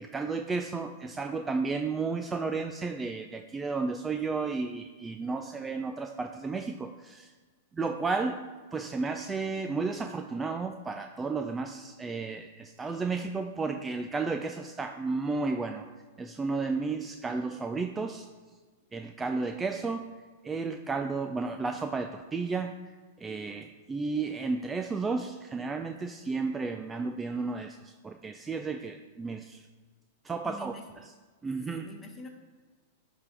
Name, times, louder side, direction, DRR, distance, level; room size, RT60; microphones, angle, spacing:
voice 1, 0.0-7.3 7.7-8.4 8.7-15.9 16.2-18.3 18.9-20.0 20.4-22.7 23.2-29.7 30.2-30.7 31.4-31.9, right 4 dB, 15° right, 6 dB, 0.4 m, -33 dB
voice 2, 30.4-30.8 31.7-32.3, left 1 dB, 20° left, 2 dB, 1.3 m, -45 dB
10.5 x 3.6 x 3.4 m, 1.4 s
hypercardioid pair, 105°, 0 cm